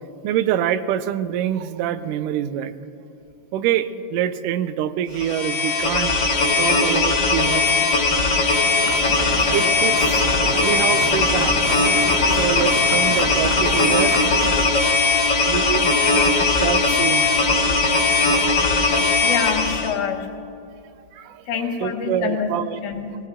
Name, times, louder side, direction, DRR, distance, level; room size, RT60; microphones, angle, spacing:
voice 1, 0.2-2.7 3.5-6.2 6.6-7.7 8.1-8.3 9.5-10.3 10.5-11.8 12.3-14.4 15.3-17.3 18.3-18.9 19.2-19.3 21.1-22.8, right 10 dB, 85° right, 13 dB, 2.2 m, -26 dB
sound 1, 5.1-19.9, left 3 dB, 40° left, 2.0 m, -19 dB
sound 2, 8.8-14.6, right 4 dB, 65° right, 1.6 m, -31 dB
voice 2, 15.0-15.6 19.2-20.3 21.5-22.5 22.8-23.2, left 7 dB, 75° left, 4 dB, 2.5 m, -27 dB
20.0 x 16.5 x 3.6 m, 2.6 s
omnidirectional pair, 3.6 m